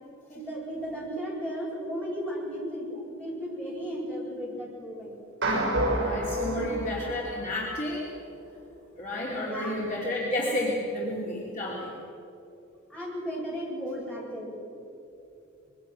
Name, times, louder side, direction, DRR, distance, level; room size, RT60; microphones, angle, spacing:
voice 1, 0.3-5.1 6.4-6.6 9.4-9.8 12.9-14.5, equal, 5° left, -6 dB, 7.9 m, -35 dB
sound 1, 5.4-7.9, right 1 dB, 60° right, 6.3 m, -29 dB
voice 2, 5.9-8.1 9.0-11.9, left 1 dB, 35° left, -5 dB, 3.1 m, -31 dB
25.0 x 22.5 x 6.5 m, 2.8 s
head